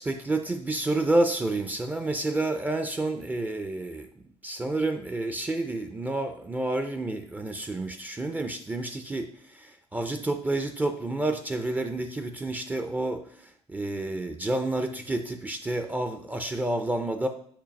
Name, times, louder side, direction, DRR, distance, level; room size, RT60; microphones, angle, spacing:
voice 1, 0.0-4.1 4.4-17.3, right 2 dB, 15° right, 7 dB, 0.4 m, -29 dB
7.2 x 2.7 x 5.1 m, 0.63 s
cardioid pair, 130°, 12 cm